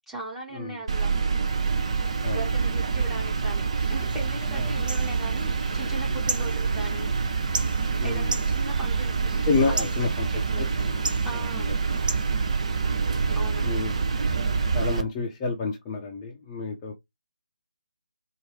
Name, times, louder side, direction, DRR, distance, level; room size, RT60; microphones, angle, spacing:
voice 1, 0.1-1.1 2.3-7.1 8.0-9.3 9.7-10.7 11.2-11.8 13.3-13.7, right 2 dB, 5° right, 1.1 m, -38 dB
sound 1, 0.9-15.0, right 5 dB, 40° right, 0.7 m, -26 dB
sound 2, 3.8-13.2, right 2 dB, 65° right, 1.0 m, -38 dB
voice 2, 8.0-8.3 9.4-10.9 11.6-11.7 13.3-14.0 14.7-16.9, left 4 dB, 20° left, 0.7 m, -29 dB
4.6 x 2.7 x 3.0 m
figure-of-eight pair, 155°, 5 cm